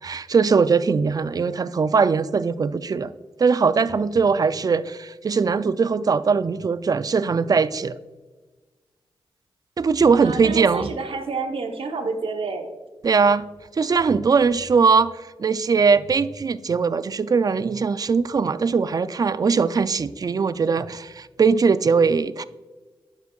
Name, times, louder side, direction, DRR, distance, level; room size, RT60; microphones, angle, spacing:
voice 1, 0.0-3.1 3.4-8.0 9.8-10.9 13.0-13.5 13.7-22.4, right 5 dB, 40° right, 15 dB, 0.4 m, -20 dB
voice 2, 10.2-12.7, right 4 dB, 70° right, 6 dB, 1.0 m, -29 dB
11.0 x 5.9 x 2.4 m, 1.3 s
cardioid pair, 50°, 10 cm